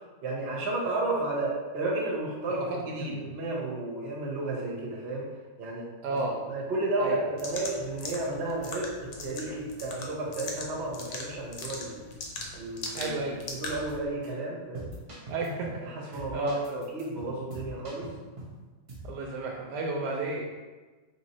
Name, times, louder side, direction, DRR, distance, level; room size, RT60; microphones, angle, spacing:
voice 1, 0.2-5.3 5.6-6.2 6.5-12.1 12.5-13.1 13.5-14.9 15.9-18.1 20.0-20.1, right 2 dB, 45° right, -3 dB, 1.0 m, -32 dB
voice 2, 2.7-3.2 6.0-6.4 7.0-7.2 12.9-13.4 15.3-16.6 19.0-20.5, right 2 dB, 75° right, 0 dB, 1.2 m, -33 dB
sound 1, 7.4-13.9, left 3 dB, 65° left, 1.1 m, -40 dB
sound 2, 13.7-13.9 14.2-14.3 14.7-15.8 16.1-18.6 18.9-19.1, right 1 dB, 60° right, 0.3 m, -43 dB
3.7 x 2.6 x 4.1 m, 1.3 s
omnidirectional pair, 1.9 m